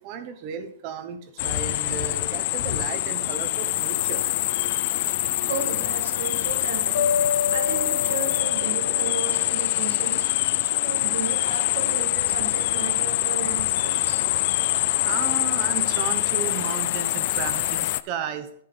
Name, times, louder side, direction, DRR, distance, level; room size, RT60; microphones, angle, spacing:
voice 1, 0.0-4.2 15.0-18.6, right 7 dB, 30° right, 10 dB, 1.0 m, -34 dB
sound 1, 1.4-18.0, left 17 dB, 35° left, 0.3 m, -25 dB
voice 2, 5.5-7.1 7.5-14.3, right 5 dB, 60° right, 5 dB, 2.1 m, -34 dB
sound 2, 6.9-10.0, left 7 dB, 55° left, 2.0 m, -29 dB
11.0 x 5.3 x 5.5 m, 0.66 s
hypercardioid pair, 175°, 0 cm